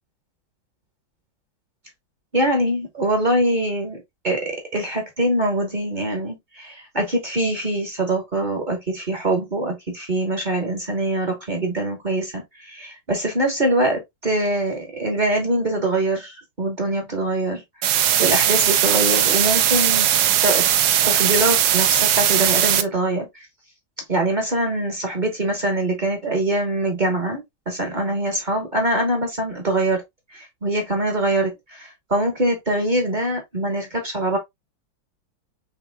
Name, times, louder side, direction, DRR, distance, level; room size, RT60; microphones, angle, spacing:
voice 1, 2.3-17.6 18.2-20.1 20.4-20.7 21.0-23.5 24.1-30.0 30.3-34.4, right 1 dB, 30° right, 1.0 m, -23 dB
sound 1, 17.8-22.8, right 10 dB, 70° right, 1.0 m, -18 dB
6.4 x 2.8 x 2.2 m
omnidirectional pair, 2.1 m